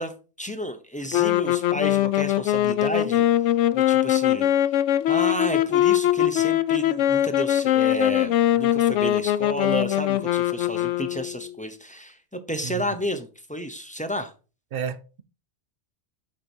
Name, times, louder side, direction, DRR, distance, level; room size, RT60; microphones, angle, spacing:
voice 1, 0.0-3.3 3.7-4.7 5.1-14.3, equal, 10° left, 0.7 m, -31 dB
sound 1, 1.1-11.5, left 12 dB, 80° left, 0.9 m, -22 dB
voice 2, 12.6-13.0 14.7-15.2, right 7 dB, 55° right, 0.8 m, -32 dB
8.3 x 4.4 x 4.4 m
omnidirectional pair, 1.2 m